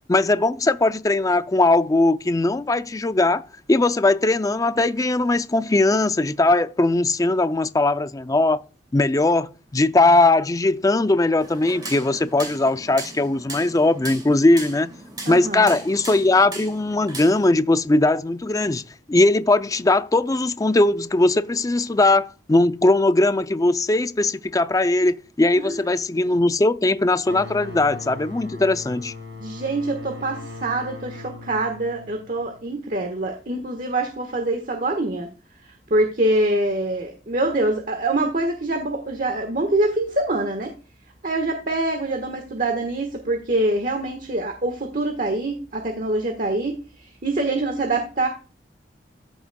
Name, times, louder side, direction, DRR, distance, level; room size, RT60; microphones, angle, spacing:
voice 1, 0.1-8.6 8.9-14.9 15.3-18.8 19.1-29.1, left 2 dB, 20° left, 0.4 m, -19 dB
sound 1, 11.4-17.5, right 2 dB, 25° right, 2.5 m, -38 dB
voice 2, 15.2-15.7 25.5-25.7 29.4-35.3 35.6-40.7 41.2-48.3, right 2 dB, 50° right, 1.4 m, -25 dB
sound 2, 27.2-32.7, left 2 dB, 85° right, 3.9 m, -39 dB
14.5 x 6.2 x 2.3 m
head